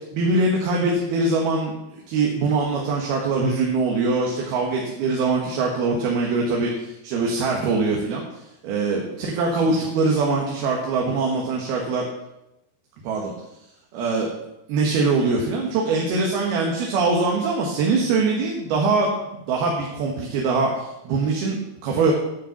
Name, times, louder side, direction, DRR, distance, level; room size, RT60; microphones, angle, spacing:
voice 1, 0.1-8.3 8.6-12.0 13.0-13.3 13.9-14.3 14.7-22.1, right 3 dB, 70° right, -1 dB, 3.3 m, -23 dB
10.0 x 10.0 x 5.8 m, 0.89 s
omnidirectional pair, 4.8 m